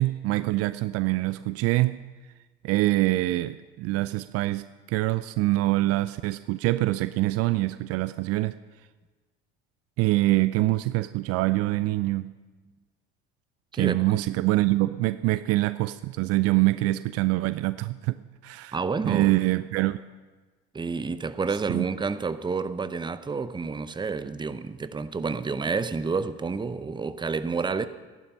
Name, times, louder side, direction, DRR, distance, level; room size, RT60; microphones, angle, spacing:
voice 1, 0.0-2.0 2.6-8.5 10.0-12.3 13.7-18.8 19.0-20.0 21.7-21.9, right 18 dB, 55° right, 0.5 m, -25 dB
voice 2, 18.7-19.4 20.7-27.9, right 4 dB, 15° right, 0.7 m, -29 dB
14.0 x 11.0 x 5.4 m
hypercardioid pair, 60°, 29 cm